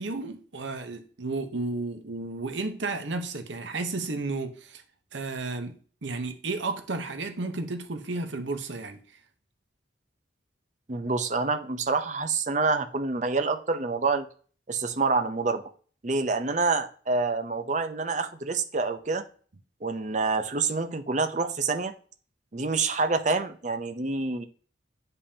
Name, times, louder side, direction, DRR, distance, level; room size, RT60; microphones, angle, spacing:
voice 1, 0.0-4.8 5.1-5.8 6.0-9.0, right 3 dB, 75° right, 1.0 m, -32 dB
voice 2, 10.9-14.3 14.7-15.6 16.0-19.2 19.8-21.9 22.5-24.4, right 4 dB, 40° right, 0.7 m, -27 dB
8.5 x 5.4 x 2.8 m
head